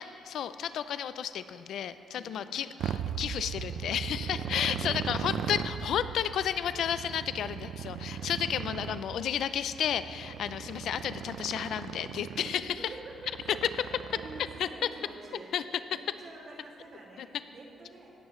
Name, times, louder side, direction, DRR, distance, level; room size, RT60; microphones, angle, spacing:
voice 1, 0.0-12.7 14.6-14.7 15.5-15.6, left 9 dB, 70° left, 13 dB, 0.4 m, -32 dB
voice 2, 2.1-2.5 4.2-5.4 8.1-8.5 10.3-10.6 12.2-15.5 15.9-18.1, right 2 dB, 50° right, -2 dB, 2.2 m, -48 dB
Motorcycle, 2.8-14.9, right 8 dB, 70° right, 0.4 m, -38 dB
16.5 x 10.5 x 3.1 m, 2.7 s
cardioid pair, 90°, 0 cm